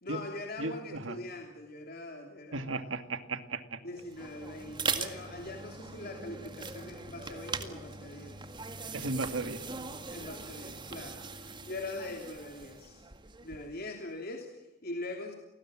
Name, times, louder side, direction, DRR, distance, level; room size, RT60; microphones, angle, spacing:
voice 1, 0.0-2.8 3.8-8.5 10.1-13.0 13.4-15.3, left 2 dB, 50° left, 3 dB, 3.0 m, -42 dB
voice 2, 0.6-1.2 2.5-3.8 8.9-9.6, right 3 dB, 75° right, 9 dB, 2.1 m, -35 dB
sound 1, 4.0-13.8, right 4 dB, 25° right, 1.9 m, -40 dB
29.5 x 19.5 x 7.6 m, 1.0 s
head